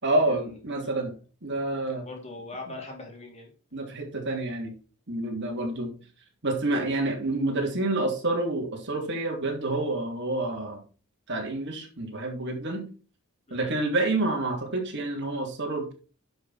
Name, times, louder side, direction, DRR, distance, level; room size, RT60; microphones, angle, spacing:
voice 1, 0.0-1.1 1.4-2.1 3.7-4.7 5.1-5.9 6.4-10.8 11.3-12.9 13.5-15.9, right 2 dB, 55° right, 1 dB, 3.0 m, -28 dB
voice 2, 1.9-3.5 13.5-13.8, left 2 dB, 30° left, 1 dB, 3.1 m, -42 dB
11.0 x 6.0 x 4.3 m, 0.36 s
head